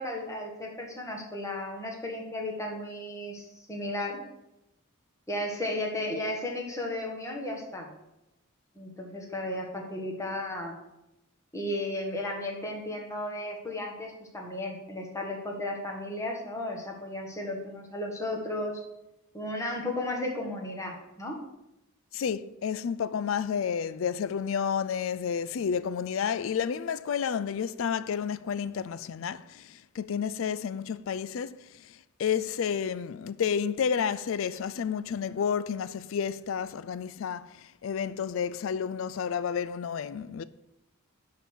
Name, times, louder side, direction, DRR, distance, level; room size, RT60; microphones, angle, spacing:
voice 1, 0.0-4.2 5.3-7.9 8.7-10.8 11.5-18.8 19.3-21.4, left 1 dB, 15° left, 1.5 m, -34 dB
voice 2, 22.1-31.6 31.9-40.4, left 7 dB, 70° left, 0.4 m, -31 dB
11.0 x 3.8 x 6.2 m
head